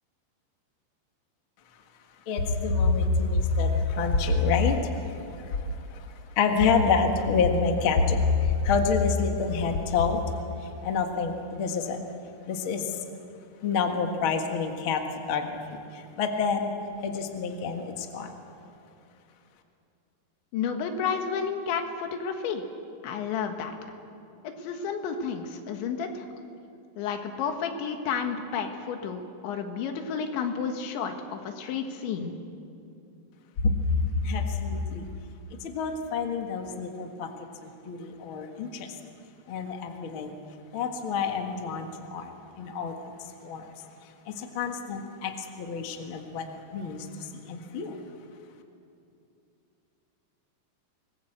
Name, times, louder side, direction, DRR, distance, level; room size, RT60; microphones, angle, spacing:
voice 1, 2.2-12.0 12.5-13.0 13.6-16.7 17.0-18.4 33.6-35.1 35.6-39.0 39.5-40.4 40.7-48.0, left 4 dB, 60° left, 4 dB, 1.4 m, -28 dB
voice 2, 20.5-22.6 23.0-23.7 24.4-26.3 27.0-32.3, left 6 dB, 85° left, 5 dB, 3.9 m, -31 dB
25.0 x 19.5 x 8.0 m, 2.7 s
omnidirectional pair, 5.2 m